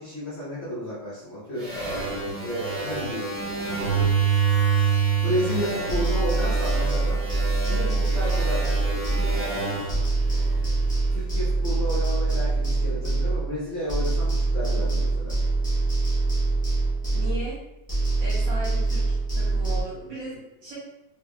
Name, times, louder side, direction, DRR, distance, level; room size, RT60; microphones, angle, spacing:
voice 1, 0.0-1.7 2.4-3.3 5.2-7.2 7.7-8.8 11.1-15.4, equal, 45° left, -9 dB, 0.9 m, -32 dB
sound 1, 1.6-11.0, right 6 dB, 35° right, 0.7 m, -27 dB
sound 2, 5.9-9.6 9.9-13.6 13.9-17.6 17.9-19.8, right 3 dB, 10° left, 0.3 m, -24 dB
voice 2, 17.1-17.6 18.2-20.8, equal, 70° right, -8 dB, 2.1 m, -37 dB
3.4 x 3.3 x 2.3 m, 0.89 s
omnidirectional pair, 2.1 m